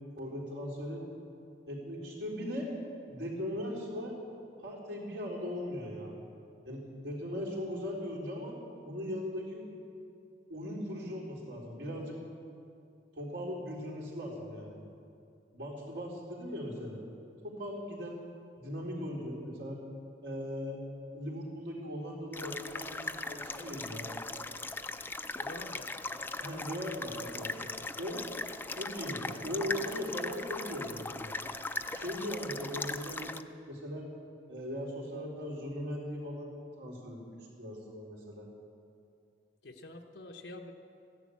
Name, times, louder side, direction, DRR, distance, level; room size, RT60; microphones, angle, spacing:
voice 1, 0.2-1.0 1.7-2.7 3.1-4.1 4.6-6.2 6.6-8.5 8.8-9.6 10.5-12.2 13.2-14.8 15.5-17.0 17.4-18.2 18.6-19.8 20.2-20.8 21.1-24.1 26.4-27.5 28.0-28.2 28.7-31.4 31.9-33.3 33.7-34.1 34.5-38.5, equal, 85° right, -3 dB, 3.9 m, -39 dB
sound 1, 22.3-33.4, left 2 dB, 10° left, 0.4 m, -39 dB
voice 2, 25.4-25.9 39.6-40.7, left 2 dB, 90° left, 2 dB, 1.0 m, -46 dB
15.5 x 11.0 x 8.4 m, 2.6 s
head